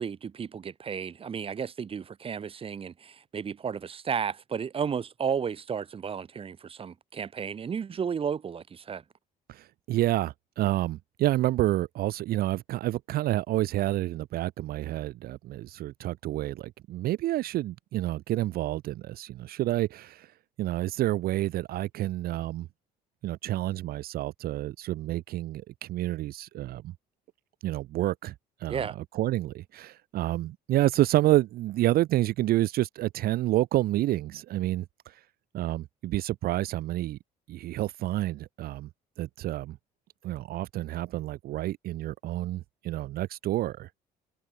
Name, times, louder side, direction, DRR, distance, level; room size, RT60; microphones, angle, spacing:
voice 1, 0.0-9.0 28.7-29.0, right 7 dB, 35° right, 1.1 m, -33 dB
voice 2, 9.5-22.7 23.2-26.9 27.6-28.3 28.6-28.9 29.1-35.2 35.5-37.2 37.5-38.9 39.2-39.8 40.2-44.1, right 15 dB, 65° right, 0.5 m, -29 dB
cardioid pair, 110°, 17 cm